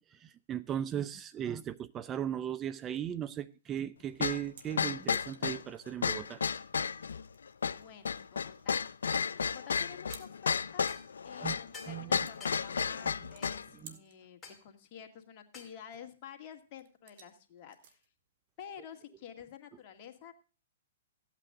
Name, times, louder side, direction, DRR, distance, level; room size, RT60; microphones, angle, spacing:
voice 1, 0.1-6.4 11.4-11.6 11.8-12.2 12.8-12.9 13.7-14.0, right 10 dB, 20° right, 0.4 m, -37 dB
sound 1, 1.2-19.5, right 7 dB, 55° right, 2.0 m, -60 dB
sound 2, 4.2-13.7, left 6 dB, 85° left, 0.5 m, -33 dB
voice 2, 7.7-10.9 11.2-18.0 18.6-20.3, left 8 dB, 40° left, 2.1 m, -50 dB
sound 3, 10.1-10.3 10.9-11.1 11.7-12.0 12.4-12.6 13.4-13.6 14.4-14.6 15.5-15.8, left 4 dB, 15° left, 3.0 m, -49 dB
15.0 x 8.9 x 3.7 m
hypercardioid pair, 130°, 0 cm